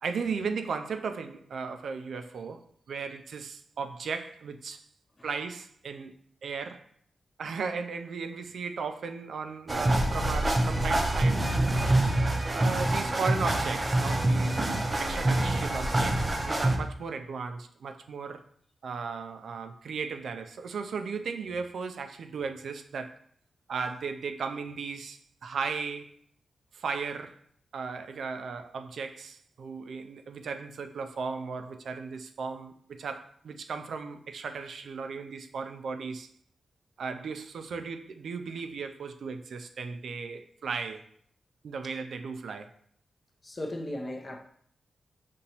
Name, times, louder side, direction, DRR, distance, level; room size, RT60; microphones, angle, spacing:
voice 1, 0.0-4.8 5.2-6.1 6.4-6.9 7.4-11.6 12.5-14.7 15.0-18.4 18.8-23.2 23.7-26.1 26.7-27.4 27.7-36.3 37.0-41.0 41.6-42.7, right 5 dB, 80° right, 0.3 m, -36 dB
sound 1, 9.7-16.8, right 1 dB, 25° right, 0.6 m, -26 dB
voice 2, 43.4-44.4, left 1 dB, 25° left, 0.5 m, -36 dB
5.3 x 2.9 x 2.8 m
wide cardioid pair, 120°, 0 cm